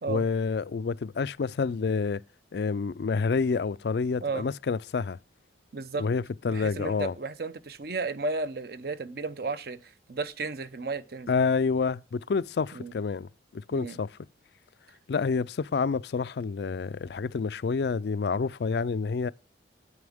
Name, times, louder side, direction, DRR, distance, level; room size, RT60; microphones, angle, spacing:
voice 1, 0.1-2.2 2.5-5.2 6.0-7.1 11.3-14.1 15.1-19.3, left 5 dB, 60° left, 0.4 m, -28 dB
voice 2, 5.7-6.1 6.5-11.3 12.7-12.9 13.7-14.0, right 3 dB, 55° right, 0.7 m, -34 dB
9.5 x 9.3 x 3.5 m
head